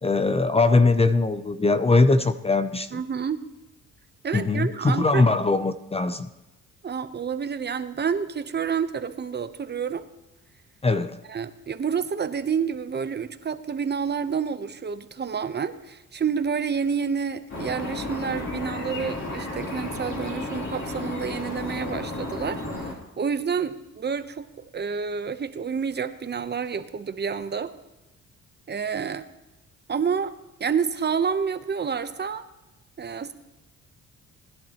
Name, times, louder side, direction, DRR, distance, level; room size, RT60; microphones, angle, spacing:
voice 1, 0.0-3.0 4.3-6.3 10.8-11.2, left 3 dB, 20° left, 11 dB, 0.6 m, -21 dB
voice 2, 2.9-3.4 4.2-5.4 6.8-10.0 11.3-24.5 24.7-27.7 28.7-29.3 29.9-30.3 30.6-32.4 33.0-33.3, right 6 dB, 35° right, 11 dB, 0.8 m, -29 dB
sound 1, 17.5-22.9, left 2 dB, 40° left, 3.2 m, -33 dB
19.5 x 11.5 x 3.0 m, 1.0 s
cardioid pair, 90°, 30 cm